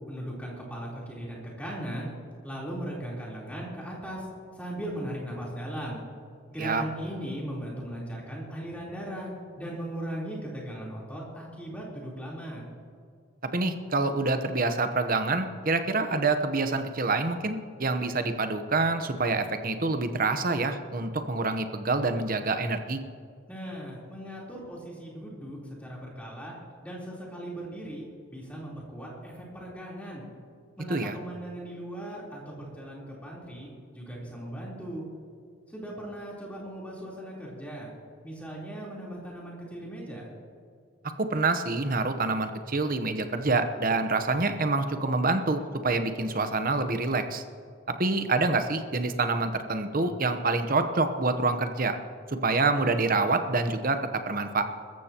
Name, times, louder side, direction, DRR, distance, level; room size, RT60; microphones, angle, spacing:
voice 1, 0.1-2.1 2.4-4.3 4.5-6.0 6.5-9.3 9.6-12.6 23.5-26.5 26.8-28.0 28.3-30.2 30.8-35.0 35.7-37.9 38.2-40.3, right 1 dB, 5° left, -5 dB, 3.7 m, -38 dB
voice 2, 13.5-23.0 30.9-31.2 41.2-47.4 48.0-51.9 52.3-54.6, right 3 dB, 45° right, 8 dB, 0.9 m, -26 dB
24.0 x 14.0 x 3.0 m, 2.1 s
head